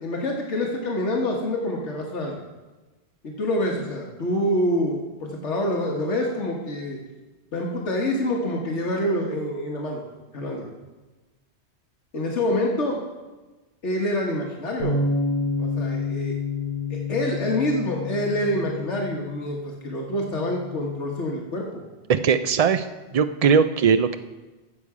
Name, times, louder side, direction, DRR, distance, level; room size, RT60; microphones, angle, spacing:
voice 1, 0.0-2.4 3.2-7.0 7.5-10.0 10.3-10.7 12.1-13.0 13.8-15.0 15.6-16.3 16.9-21.8, left 1 dB, 80° left, -1 dB, 1.6 m, -26 dB
sound 1, 14.8-21.0, left 3 dB, 15° left, 4.6 m, -29 dB
voice 2, 22.1-22.9 23.1-24.2, right 6 dB, 75° right, 11 dB, 0.3 m, -19 dB
15.5 x 6.9 x 4.8 m, 1.2 s
omnidirectional pair, 1.2 m